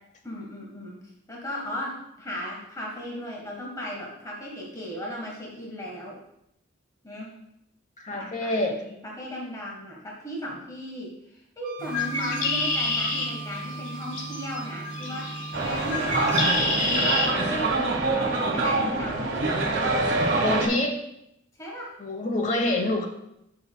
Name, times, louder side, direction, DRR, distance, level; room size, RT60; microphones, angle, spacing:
voice 1, 0.2-1.0 1.3-6.2 7.0-7.4 8.1-8.5 8.8-20.0 21.6-21.9, equal, 15° left, -3 dB, 1.4 m, -36 dB
voice 2, 8.0-8.8 20.4-21.0 22.0-23.1, left 2 dB, 40° left, 4 dB, 1.0 m, -26 dB
Wind instrument woodwind instrument, 11.6-16.8, right 6 dB, 40° right, 1.0 m, -42 dB
Bird, 11.8-17.3, left 2 dB, 65° left, 1.4 m, -28 dB
sound 1, 15.5-20.7, right 3 dB, 60° right, 1.5 m, -25 dB
11.0 x 5.5 x 2.3 m, 0.80 s
head